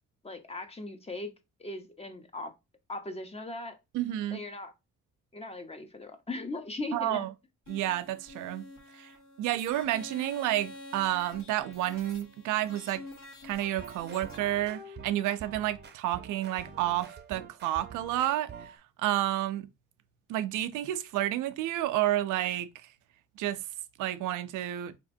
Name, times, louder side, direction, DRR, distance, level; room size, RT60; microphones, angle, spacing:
voice 1, 0.2-1.3 1.6-2.5 2.9-3.8 4.3-4.7 5.3-7.3, left 2 dB, 20° left, 0.7 m, -39 dB
voice 2, 3.9-4.4 6.9-7.3 7.7-8.6 8.9-9.1 9.4-13.0 13.4-19.7 20.3-22.9 23.4-23.6 24.0-24.9, right 13 dB, 85° right, 0.5 m, -30 dB
sound 1, 7.6-14.4, left 2 dB, 65° left, 1.6 m, -48 dB
sound 2, 13.6-18.8, right 5 dB, 35° right, 0.6 m, -46 dB
4.1 x 2.9 x 2.6 m
cardioid pair, 90°, 30 cm